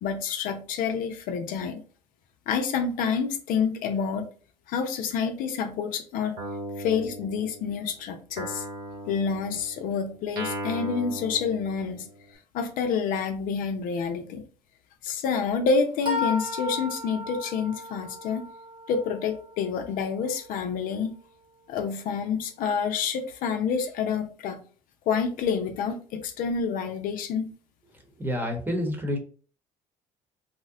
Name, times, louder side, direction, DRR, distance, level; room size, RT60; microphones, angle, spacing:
voice 1, 0.0-1.8 2.5-4.3 4.7-6.4 6.8-8.7 9.1-12.1 12.5-14.4 15.0-18.4 18.9-21.1 21.7-24.6 25.1-27.5, left 6 dB, 70° left, 5 dB, 0.5 m, -28 dB
Guitar, 6.4-7.9 8.4-12.3, right 1 dB, 85° right, 0.8 m, -37 dB
sound 1, 9.1-9.3 16.0-21.8, left 3 dB, 35° right, 0.8 m, -36 dB
voice 2, 28.2-29.2, left 1 dB, 15° right, 1 dB, 1.0 m, -28 dB
2.7 x 2.1 x 3.6 m, 0.40 s
supercardioid pair, 75°, 15 cm